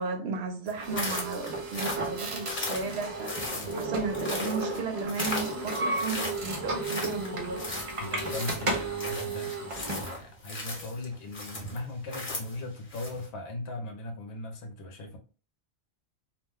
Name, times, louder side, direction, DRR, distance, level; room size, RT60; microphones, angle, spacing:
voice 1, 0.0-3.3 3.7-7.6, right 4 dB, 70° right, 0.8 m, -34 dB
sound 1, 0.7-13.3, left 2 dB, 45° left, 1.1 m, -37 dB
sound 2, 0.8-10.2, right 2 dB, 40° right, 0.5 m, -34 dB
voice 2, 8.0-15.2, left 2 dB, 65° left, 0.9 m, -38 dB
2.5 x 2.1 x 3.4 m
omnidirectional pair, 1.1 m